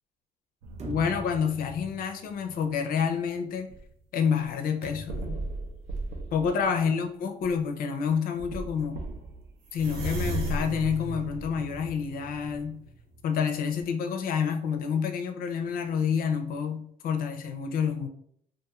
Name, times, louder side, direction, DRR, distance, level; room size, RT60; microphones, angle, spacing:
sound 1, 0.6-2.7 3.3-3.9 4.4-4.5 5.1-6.7 7.4-7.6 8.1-8.2 8.4-13.5 13.8-13.9, right 2 dB, 85° right, 0.6 m, -37 dB
voice 1, 0.8-3.7 4.1-5.4 6.3-9.0 9.7-12.8 13.2-18.1, left 6 dB, 60° left, 6 dB, 0.5 m, -28 dB
sound 2, 0.8-2.3 4.8-5.4, right 3 dB, 40° right, 0.6 m, -42 dB
2.5 x 2.3 x 2.9 m, 0.67 s
cardioid pair, 110°, 17 cm